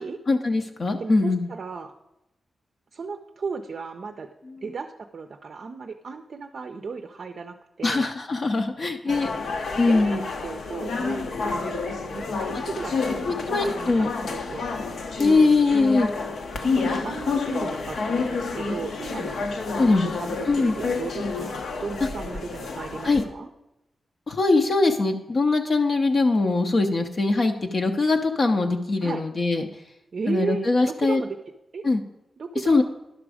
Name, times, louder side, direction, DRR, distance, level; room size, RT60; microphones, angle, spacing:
voice 1, 0.3-1.5 4.5-4.6 7.8-9.3 9.8-10.2 12.5-12.6 13.3-14.1 15.2-16.1 16.6-16.7 19.8-20.1 20.5-20.8 23.0-23.2 24.3-29.7 30.3-31.2 31.8-32.0 32.7-32.8, left 3 dB, 40° left, 4 dB, 0.6 m, -22 dB
voice 2, 1.0-1.9 2.9-4.3 4.6-8.1 9.1-9.3 9.9-13.9 14.2-14.7 16.6-19.4 19.9-23.5 29.0-29.2 30.1-31.3 31.7-31.8 32.4-32.8, right 5 dB, 50° right, 5 dB, 0.5 m, -35 dB
sound 1, 9.1-23.2, left 4 dB, 75° left, 0.8 m, -29 dB
11.0 x 6.1 x 4.8 m, 0.92 s
wide cardioid pair, 160°, 0 cm